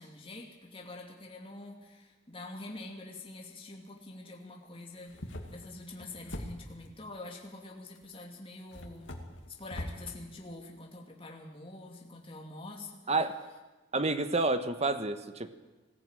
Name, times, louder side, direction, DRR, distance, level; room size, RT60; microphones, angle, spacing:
voice 1, 0.0-9.2 9.5-13.0, left 2 dB, 30° left, 0 dB, 2.7 m, -46 dB
sound 1, 5.0-6.9 8.0-8.1 8.7-10.0, left 1 dB, 70° left, 2.4 m, -42 dB
voice 2, 13.1-13.4 13.9-15.5, right 3 dB, 35° right, 10 dB, 1.2 m, -29 dB
20.5 x 15.0 x 9.0 m, 1.2 s
head